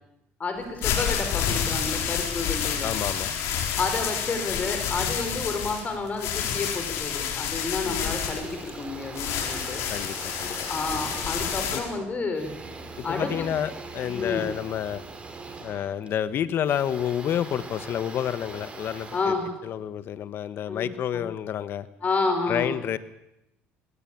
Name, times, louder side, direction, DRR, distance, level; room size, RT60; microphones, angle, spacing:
voice 1, 0.4-2.9 3.8-9.8 10.7-12.5 13.0-13.5 14.0-14.5 19.1-19.5 20.7-21.2 22.0-22.7, left 3 dB, 30° left, 6 dB, 4.6 m, -30 dB
sound 1, 0.6-11.8, left 8 dB, 70° left, 4.1 m, -29 dB
voice 2, 2.8-3.3 7.8-8.2 9.9-10.6 11.7-11.8 13.0-15.0 15.6-19.3 19.6-21.9 22.5-23.0, left 10 dB, 55° left, 14 dB, 1.4 m, -29 dB
sound 2, 8.0-20.2, right 3 dB, 25° right, 4.0 m, -41 dB
20.5 x 17.0 x 8.8 m, 0.87 s
supercardioid pair, 95°, 5 cm